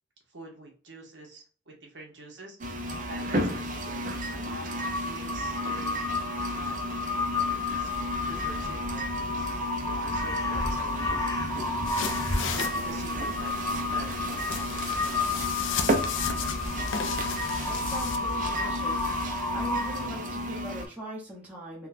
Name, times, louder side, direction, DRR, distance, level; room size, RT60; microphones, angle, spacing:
voice 1, 0.3-6.0 6.5-6.9 7.3-7.9 8.3-9.5 9.8-11.1 12.5-15.4, right 1 dB, 65° right, 0 dB, 1.1 m, -46 dB
sound 1, 2.6-20.9, equal, 40° right, 0.5 m, -33 dB
Crow, 4.8-20.3, left 3 dB, 15° left, 0.4 m, -32 dB
sound 2, 11.8-18.2, left 6 dB, 80° left, 0.5 m, -35 dB
voice 2, 17.7-19.1 19.5-21.9, right 1 dB, 10° right, -5 dB, 0.8 m, -40 dB
3.6 x 2.3 x 2.6 m, 0.41 s
head